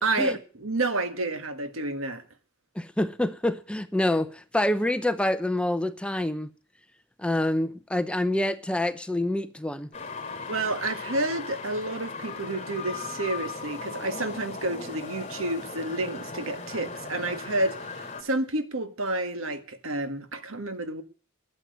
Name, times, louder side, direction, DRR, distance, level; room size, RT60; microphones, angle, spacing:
voice 1, 0.0-2.2 10.5-21.0, right 2 dB, 75° right, 1.7 m, -30 dB
voice 2, 2.8-6.5 7.2-9.9, left 1 dB, 5° left, 0.7 m, -26 dB
sound 1, 9.9-18.2, left 4 dB, 30° left, 2.7 m, -37 dB
12.0 x 7.7 x 9.3 m
head